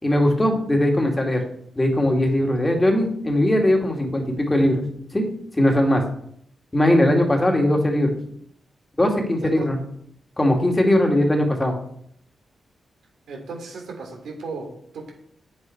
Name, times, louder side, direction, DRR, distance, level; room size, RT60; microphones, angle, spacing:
voice 1, 0.0-1.4 1.8-4.8 5.1-5.3 5.6-6.0 6.7-8.2 9.0-9.8 10.4-11.7, left 1 dB, 20° left, 2 dB, 2.3 m, -19 dB
voice 2, 9.4-9.7 13.3-14.7 14.9-15.1, right 4 dB, 85° right, 0 dB, 2.9 m, -35 dB
8.1 x 8.0 x 4.6 m, 0.67 s
cardioid pair, 80°, 0 cm